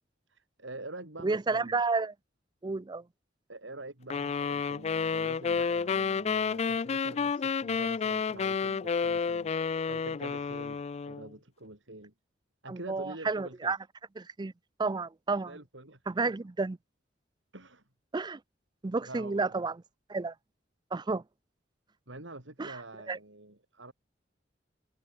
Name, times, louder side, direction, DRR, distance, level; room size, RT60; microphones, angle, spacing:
voice 1, 0.3-1.8 3.5-12.1 12.6-13.7 15.5-16.3 17.5-17.8 19.0-19.7 22.1-23.9, right 2 dB, 80° right, 5.4 m, -46 dB
voice 2, 1.2-2.1 2.6-3.0 12.7-13.8 14.2-14.5 14.8-15.6 16.1-16.8 18.1-18.4 18.8-19.8 20.1-20.3 20.9-21.2 22.6-22.8 23.1-23.2, right 3 dB, 25° right, 0.5 m, -31 dB
sound 1, 4.1-11.3, left 5 dB, 35° left, 0.4 m, -30 dB
head